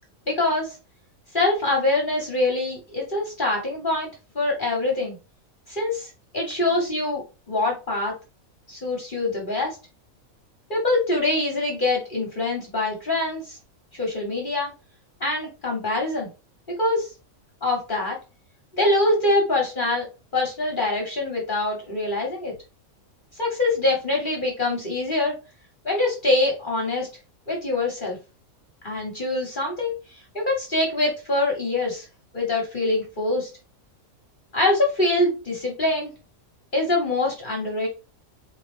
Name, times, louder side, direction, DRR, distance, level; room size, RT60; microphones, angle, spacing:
voice 1, 0.3-0.8 1.3-4.1 4.3-5.2 5.7-8.1 8.7-9.8 10.7-13.6 14.0-14.7 15.2-16.3 16.7-17.1 17.6-18.2 18.7-20.1 20.3-22.5 23.3-25.4 25.8-27.1 27.5-28.2 28.8-32.1 32.3-33.5 34.5-36.1 36.7-37.9, left 2 dB, 40° left, 0 dB, 1.0 m, -24 dB
4.2 x 2.5 x 3.3 m, 0.30 s
omnidirectional pair, 1.5 m